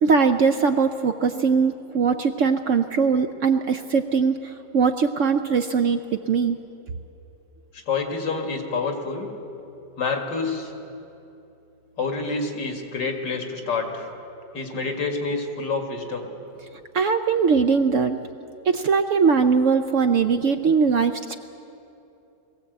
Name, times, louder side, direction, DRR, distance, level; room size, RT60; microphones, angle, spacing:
voice 1, 0.0-6.0 6.3-6.6 16.9-18.2 18.6-21.4, right 5 dB, 65° right, 7 dB, 0.8 m, -21 dB
voice 2, 7.9-9.3 10.0-10.7 12.0-14.1 14.5-16.2, left 4 dB, 85° left, 3 dB, 2.7 m, -27 dB
20.5 x 16.5 x 8.0 m, 2.8 s
omnidirectional pair, 1.8 m